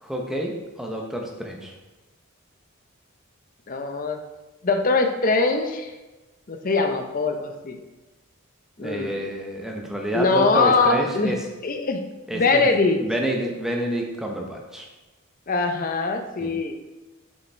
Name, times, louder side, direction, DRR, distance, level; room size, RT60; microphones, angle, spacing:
voice 1, 0.0-1.7 8.8-11.4 12.3-14.9 16.4-16.5, right 1 dB, ahead, 1 dB, 0.7 m, -28 dB
voice 2, 3.7-4.2 4.6-5.9 6.5-7.8 8.8-9.2 10.1-11.3 11.6-12.0 12.3-13.0 15.5-16.7, left 3 dB, 40° left, 5 dB, 0.6 m, -22 dB
5.6 x 5.5 x 3.3 m, 1.1 s
head